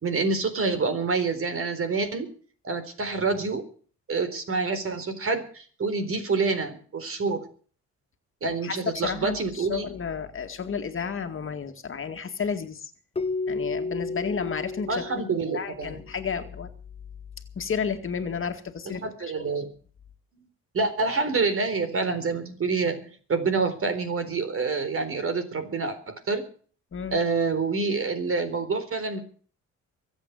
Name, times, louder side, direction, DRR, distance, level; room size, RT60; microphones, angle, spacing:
voice 1, 0.0-2.3 2.6-3.6 4.1-7.4 8.4-9.9 14.9-16.0 18.9-19.7 20.7-23.0 23.3-26.4 27.1-29.2, right 4 dB, 45° right, 9 dB, 4.1 m, -27 dB
voice 2, 9.0-12.9 13.5-15.2 15.5-16.7 17.6-19.0 26.9-27.2, left 6 dB, 45° left, 6 dB, 2.0 m, -32 dB
Keyboard (musical), 13.2-16.0, left 3 dB, 20° left, 0.7 m, -32 dB
23.5 x 8.3 x 6.7 m, 0.43 s
cardioid pair, 90°, 30 cm